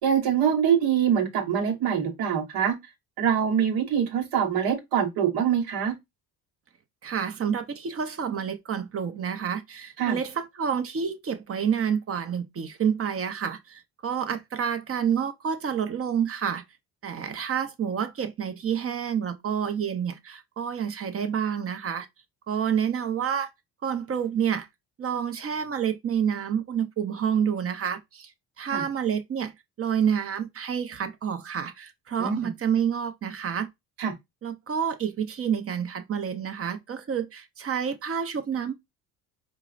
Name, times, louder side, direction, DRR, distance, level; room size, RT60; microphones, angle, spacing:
voice 1, 0.0-2.7 3.2-5.9 10.0-10.2 28.7-28.8 32.2-32.5 34.0-34.1, right 8 dB, 75° right, 1.2 m, -24 dB
voice 2, 7.0-16.6 17.0-22.1 22.5-23.5 23.8-24.7 25.0-28.3 28.6-29.5 29.8-33.7 34.4-38.7, right 8 dB, 35° right, 0.7 m, -28 dB
4.6 x 2.1 x 2.5 m
supercardioid pair, 75°, 39 cm